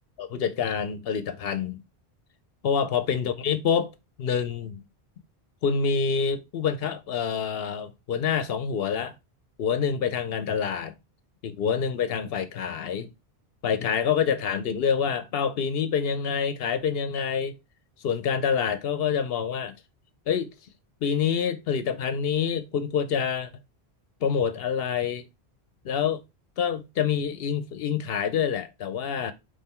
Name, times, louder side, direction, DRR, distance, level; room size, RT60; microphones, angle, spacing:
voice 1, 0.2-1.8 2.6-3.9 4.2-4.8 5.6-9.1 9.6-10.9 11.4-13.1 13.6-17.6 18.0-19.7 20.3-20.5 21.0-23.5 24.2-25.2 25.8-26.2 26.6-29.3, left 7 dB, 70° left, 0.8 m, -26 dB
4.3 x 3.2 x 3.6 m
omnidirectional pair, 1.1 m